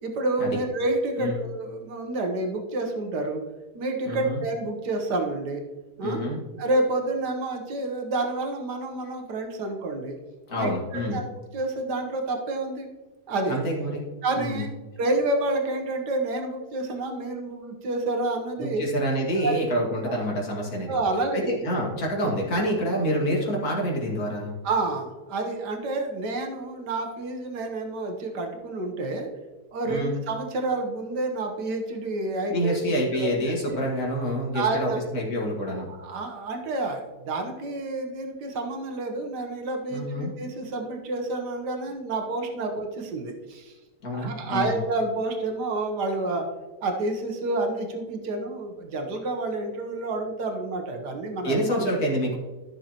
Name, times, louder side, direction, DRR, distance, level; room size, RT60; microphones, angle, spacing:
voice 1, 0.0-3.4 3.7-5.6 6.0-6.2 6.6-10.2 10.5-12.9 13.3-13.6 14.2-14.7 15.0-18.8 19.4-19.6 20.1-20.2 20.9-21.6 24.6-29.3 29.7-32.8 33.2-33.3 33.7-33.8 34.5-35.0 35.6-43.7 44.1-46.5 46.8-52.0, right 2 dB, 85° right, 4 dB, 1.7 m, -29 dB
voice 2, 4.1-4.4 6.0-6.4 10.5-11.2 13.5-14.0 14.4-14.7 18.6-21.0 21.3-24.6 29.8-30.2 32.5-35.9 39.9-40.3 44.0-44.8 51.4-52.4, equal, 65° left, -2 dB, 2.5 m, -27 dB
13.0 x 6.5 x 2.9 m, 1.2 s
omnidirectional pair, 1.7 m